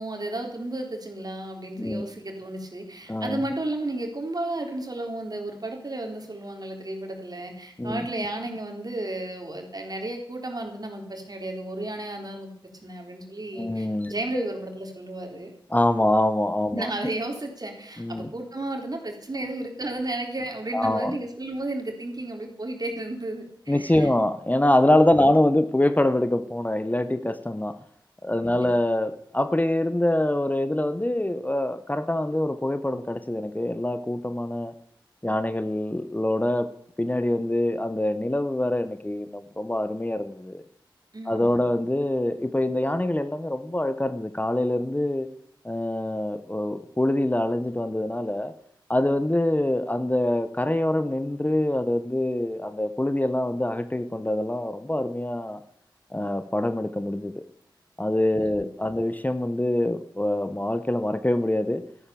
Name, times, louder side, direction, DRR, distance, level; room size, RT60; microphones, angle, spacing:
voice 1, 0.0-12.5 12.8-15.5 16.7-24.1 28.4-28.7 41.1-41.6 58.4-58.9, right 2 dB, 50° right, 3.8 m, -33 dB
voice 2, 3.1-3.5 7.8-8.3 13.5-14.5 15.7-17.1 18.0-18.3 19.4-19.5 20.7-21.2 23.7-27.8 28.2-34.7 35.2-36.7 37.0-40.6 41.2-45.3 45.6-48.5 48.9-55.6 56.1-57.4 58.0-61.8, left 1 dB, 20° left, 1.0 m, -25 dB
13.5 x 11.0 x 7.0 m
cardioid pair, 40°, 9 cm